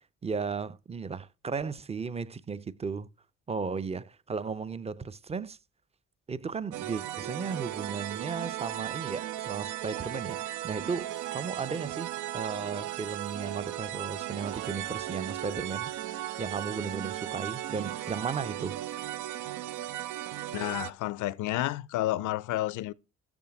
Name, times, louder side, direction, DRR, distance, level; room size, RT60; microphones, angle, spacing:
voice 1, 0.2-3.1 3.5-5.6 6.3-18.8, right 5 dB, 20° right, 0.5 m, -35 dB
sound 1, 6.7-20.9, right 13 dB, 80° right, 0.6 m, -36 dB
voice 2, 20.5-22.9, left 15 dB, 80° left, 0.5 m, -30 dB
7.2 x 5.8 x 5.9 m
cardioid pair, 90°, 30 cm